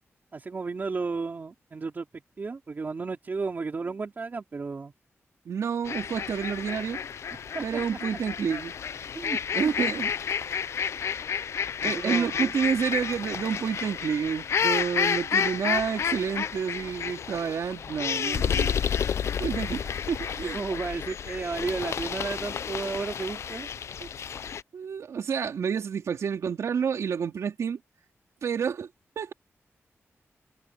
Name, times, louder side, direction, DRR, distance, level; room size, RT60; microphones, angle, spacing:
voice 1, 0.3-2.1 2.4-4.9 7.5-7.8 9.1-9.4 11.8-12.5 20.3-23.7, right 4 dB, 35° right, 3.7 m, -33 dB
voice 2, 5.4-7.0 7.6-8.7 9.5-10.1 11.8-18.7 19.4-20.6 24.0-24.1 24.7-27.8 28.4-28.9 29.1-29.3, right 7 dB, 75° right, 3.5 m, -29 dB
sound 1, 5.9-24.6, left 7 dB, 65° left, 0.5 m, -30 dB
wide cardioid pair, 160°, 5 cm